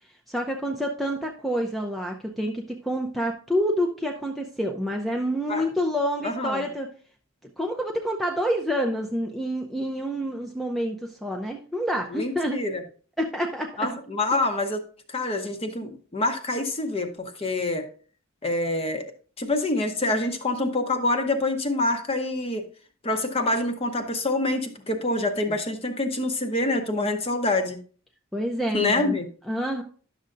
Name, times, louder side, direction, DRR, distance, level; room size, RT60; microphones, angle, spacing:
voice 1, 0.3-6.9 7.6-12.6 13.2-13.9 25.5-25.6 28.3-29.2 29.5-29.8, equal, ahead, 1 dB, 0.5 m, -28 dB
voice 2, 6.2-6.6 12.1-12.8 13.8-14.8 15.1-17.9 18.4-19.1 19.4-22.7 23.0-27.8 28.7-29.3, left 2 dB, 25° left, 7 dB, 0.8 m, -26 dB
11.0 x 6.5 x 2.5 m, 0.42 s
head